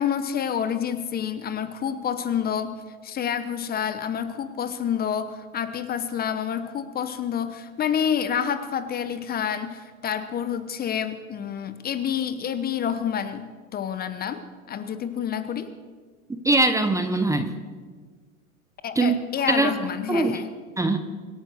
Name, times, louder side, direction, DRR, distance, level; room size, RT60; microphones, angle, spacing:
voice 1, 0.0-13.4 13.7-15.7 18.8-20.5, left 8 dB, 20° left, 12 dB, 1.0 m, -28 dB
voice 2, 16.4-17.5 19.0-19.1 19.5-19.7 20.1-20.4 20.8-21.0, right 2 dB, 5° right, 8 dB, 0.9 m, -21 dB
24.5 x 8.8 x 6.4 m, 1.5 s
hypercardioid pair, 105°, 42 cm